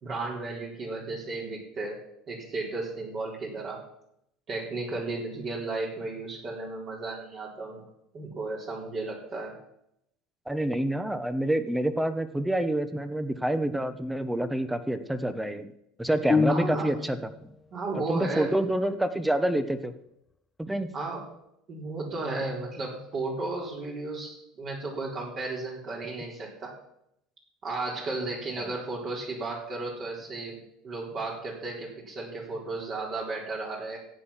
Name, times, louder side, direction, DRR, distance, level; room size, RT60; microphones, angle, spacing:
voice 1, 0.0-2.0 2.3-3.8 4.5-7.8 8.1-9.5 16.5-16.9 17.7-18.5 20.9-21.2 21.7-26.8 27.6-30.6 30.8-34.0, right 3 dB, 45° right, -2 dB, 4.0 m, -34 dB
voice 2, 10.5-15.7 16.0-17.5 18.1-19.9 20.6-20.9 28.6-28.7, right 1 dB, 5° right, 11 dB, 1.1 m, -27 dB
sound 1, 16.3-17.3, left 4 dB, 20° left, 0.5 m, -26 dB
14.5 x 8.6 x 5.8 m, 0.79 s
supercardioid pair, 100°, 0 cm